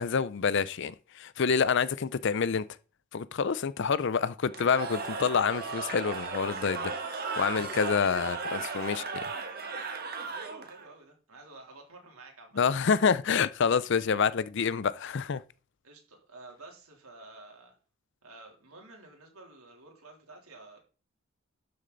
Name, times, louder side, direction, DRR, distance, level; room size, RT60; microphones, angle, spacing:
voice 1, 0.0-2.6 3.1-9.2 12.6-15.4, left 6 dB, 50° left, 0.5 m, -27 dB
Cheering / Crowd, 4.5-10.9, right 4 dB, 45° right, 1.5 m, -36 dB
voice 2, 8.0-8.6 10.2-12.7 15.8-17.7 18.2-20.8, right 2 dB, 75° right, 3.2 m, -50 dB
12.0 x 6.6 x 3.9 m
head